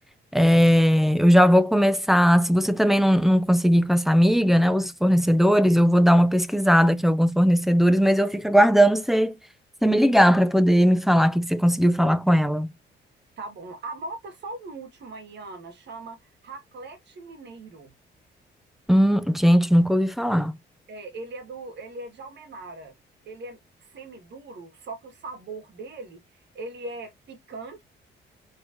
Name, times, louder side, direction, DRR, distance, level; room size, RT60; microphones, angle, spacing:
voice 1, 0.3-9.4 9.8-12.7 18.9-20.5, equal, ahead, 0.6 m, -19 dB
voice 2, 13.4-17.9 20.9-22.9 23.3-27.8, right 3 dB, 60° right, 2.1 m, -40 dB
4.1 x 4.0 x 2.9 m
cardioid pair, 90°, 20 cm